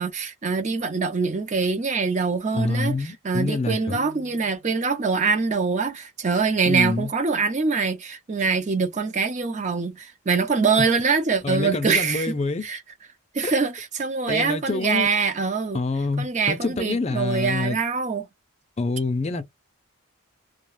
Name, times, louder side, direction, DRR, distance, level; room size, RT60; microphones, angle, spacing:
voice 1, 0.0-12.3 12.6-12.8 13.3-15.8 16.2-18.3, right 4 dB, 35° right, 0.5 m, -24 dB
voice 2, 2.5-4.0 6.7-7.1 11.4-12.7 13.4-13.5 14.3-15.1 15.7-17.8 18.8-19.4, left 3 dB, 30° left, 0.4 m, -26 dB
sound 1, 3.9-4.9, equal, 55° right, 0.8 m, -44 dB
2.3 x 2.2 x 3.1 m
head